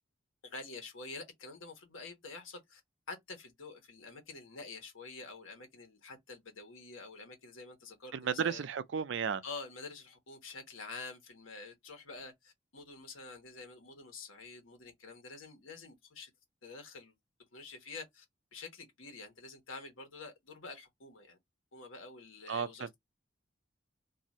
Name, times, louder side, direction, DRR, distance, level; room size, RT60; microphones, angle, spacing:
voice 1, 0.4-2.8 3.1-8.7 9.4-16.3 16.6-17.1 17.5-18.2 18.5-21.4 21.7-23.0, left 3 dB, 90° left, 1.3 m, -48 dB
voice 2, 8.2-9.4 22.5-22.7, right 6 dB, 70° right, 0.4 m, -33 dB
2.7 x 2.5 x 4.1 m
head